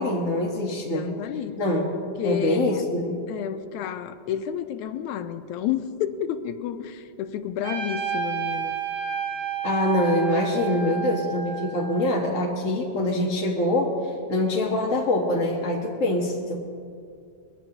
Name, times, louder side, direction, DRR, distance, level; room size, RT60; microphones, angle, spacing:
voice 1, 0.0-1.1 1.6-1.9 2.2-3.2 9.6-14.0 14.3-16.6, left 1 dB, 40° left, -2 dB, 1.1 m, -24 dB
voice 2, 0.8-1.5 2.2-2.8 3.3-8.8, left 9 dB, 85° left, 10 dB, 2.1 m, -30 dB
Trumpet, 7.6-12.3, right 8 dB, 50° right, 2.3 m, -31 dB
22.0 x 15.5 x 3.0 m, 2.3 s
omnidirectional pair, 3.3 m